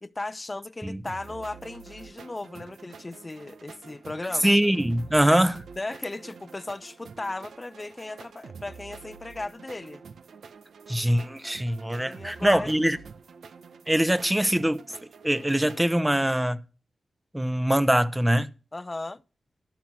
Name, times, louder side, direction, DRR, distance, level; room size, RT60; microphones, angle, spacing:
voice 1, 0.0-4.6 5.8-10.0 12.0-12.7 18.7-19.2, left 2 dB, 30° left, 0.7 m, -36 dB
sound 1, 1.1-15.8, right 5 dB, 85° right, 0.8 m, -47 dB
voice 2, 4.4-5.6 10.9-13.0 13.9-14.8 15.2-16.6 17.3-18.5, right 1 dB, 10° right, 0.9 m, -23 dB
12.0 x 5.7 x 6.2 m
cardioid pair, 55°, 0 cm